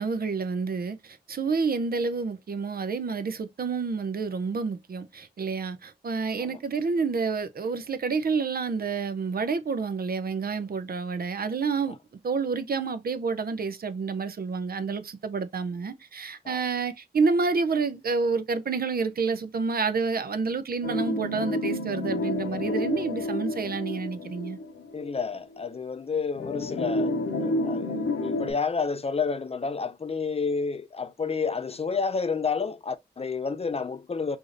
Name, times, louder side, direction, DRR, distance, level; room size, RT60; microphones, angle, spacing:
voice 1, 0.0-12.0 12.2-24.6, right 4 dB, 55° right, 0.5 m, -29 dB
sound 1, 20.8-25.2 25.6-25.7 26.4-28.5, left 2 dB, 85° left, 0.7 m, -30 dB
voice 2, 24.9-34.4, left 5 dB, 35° left, 0.4 m, -30 dB
4.8 x 2.5 x 2.5 m
wide cardioid pair, 70°, 18 cm